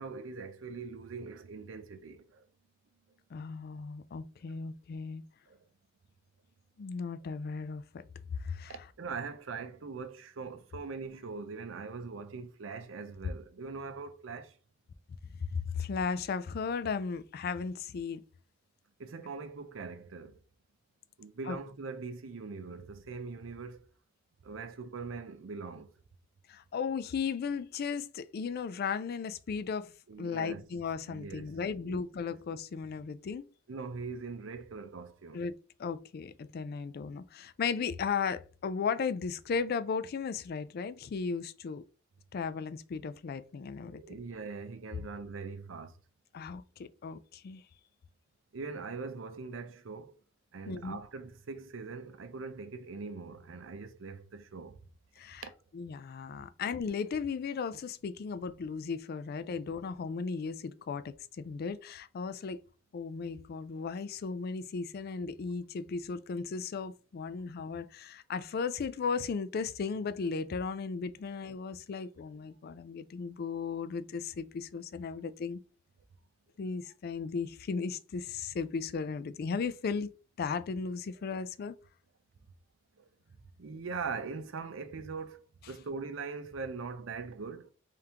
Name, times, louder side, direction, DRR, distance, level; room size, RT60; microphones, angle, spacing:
voice 1, 0.0-2.5 4.5-4.6 5.5-5.6 8.7-14.6 19.0-20.4 21.2-23.9 24.4-25.9 30.1-30.6 31.1-32.4 33.7-35.4 43.9-46.0 48.5-50.2 50.5-54.8 55.4-55.5 83.0-83.1 83.6-87.7, right 4 dB, 75° right, 0.6 m, -42 dB
voice 2, 3.3-5.2 6.8-8.0 8.4-8.7 15.5-18.3 21.5-21.6 26.5-29.9 30.2-33.4 35.3-41.8 42.3-44.0 46.3-47.6 50.7-51.0 55.2-55.4 55.7-62.6 62.9-75.6 76.6-80.1 80.4-81.7, left 5 dB, 55° left, 0.4 m, -36 dB
3.6 x 3.4 x 2.8 m
head